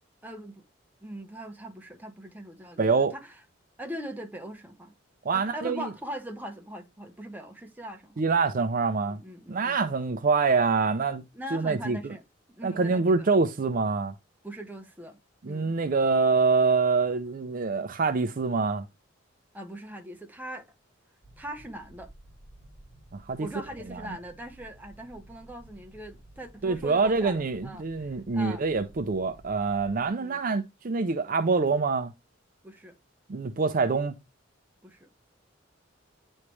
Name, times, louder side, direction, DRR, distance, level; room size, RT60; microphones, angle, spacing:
voice 1, 0.2-0.6 1.0-3.3 3.8-4.9 5.3-8.2 9.0-9.8 11.3-12.2 12.5-13.3 14.4-15.2 15.4-15.7 19.5-20.7 21.4-22.1 23.4-28.6 30.1-30.4 32.6-33.0 34.8-35.1, right 1 dB, 10° right, 0.9 m, -41 dB
voice 2, 2.8-3.1 5.3-5.9 8.2-9.2 9.5-11.2 11.5-12.1 12.6-14.1 15.4-18.8 23.1-23.5 23.9-24.0 26.6-32.1 33.3-34.2, right 4 dB, 45° right, 0.5 m, -25 dB
sound 1, 21.2-30.1, right 1 dB, 45° left, 3.4 m, -53 dB
9.6 x 3.2 x 3.1 m
head